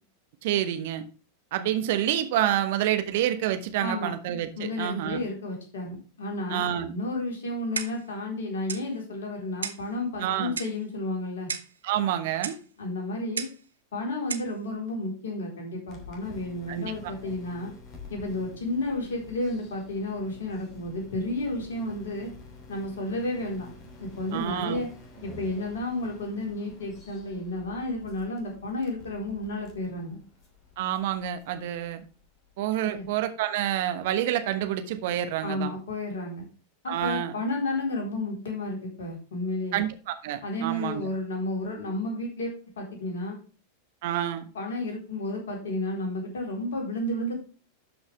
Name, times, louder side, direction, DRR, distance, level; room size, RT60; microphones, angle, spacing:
voice 1, 0.4-1.0 1.5-5.2 6.5-6.9 10.2-10.6 11.8-12.6 16.7-17.1 24.3-24.8 30.8-32.0 32.6-35.7 36.9-37.4 39.7-41.0 44.0-44.5, right 11 dB, 50° right, 1.1 m, -28 dB
voice 2, 3.8-4.1 4.6-11.5 12.8-13.5 13.9-17.7 18.1-22.3 22.7-23.7 24.0-24.9 25.2-30.2 32.8-33.0 35.4-36.5 36.8-39.8 40.4-42.5 42.8-43.4 44.5-47.4, left 2 dB, 60° left, 4.0 m, -32 dB
Clock, 7.8-8.1 8.7-8.9 9.6-9.9 10.6-10.8 11.5-11.8 12.4-12.6 13.4-13.6 14.3-14.5, right 6 dB, 70° right, 0.8 m, -34 dB
sound 1, 15.9-33.1, left 2 dB, 35° left, 3.0 m, -49 dB
12.0 x 5.5 x 3.4 m
figure-of-eight pair, 90°, 0 cm